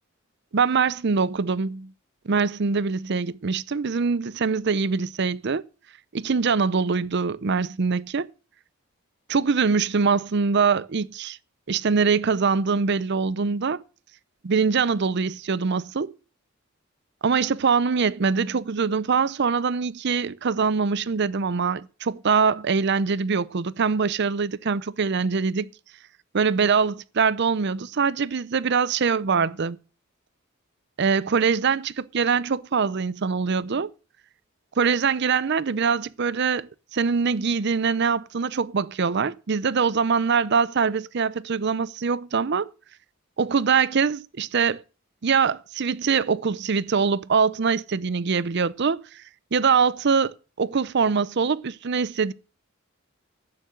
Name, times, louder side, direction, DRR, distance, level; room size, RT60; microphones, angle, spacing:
voice 1, 0.5-1.9 2.3-5.6 6.1-8.3 9.3-11.4 11.7-13.8 14.4-16.1 17.2-25.7 26.3-29.8 31.0-33.9 34.8-42.7 43.4-44.8 45.2-49.0 49.5-52.3, right 5 dB, 55° right, 0.5 m, -23 dB
11.5 x 9.1 x 6.4 m
head